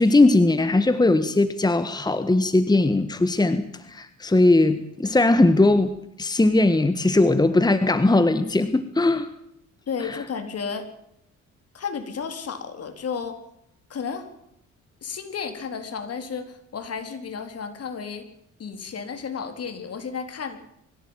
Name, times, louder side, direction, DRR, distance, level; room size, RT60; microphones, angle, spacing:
voice 1, 0.0-5.9 6.2-9.3 10.0-10.2, left 2 dB, 15° left, 11 dB, 1.4 m, -19 dB
voice 2, 9.9-10.9 11.7-13.4 13.9-14.3 15.0-18.3 18.6-20.6, left 6 dB, 55° left, 7 dB, 4.1 m, -32 dB
23.0 x 16.0 x 9.1 m, 0.77 s
cardioid pair, 90°, 30 cm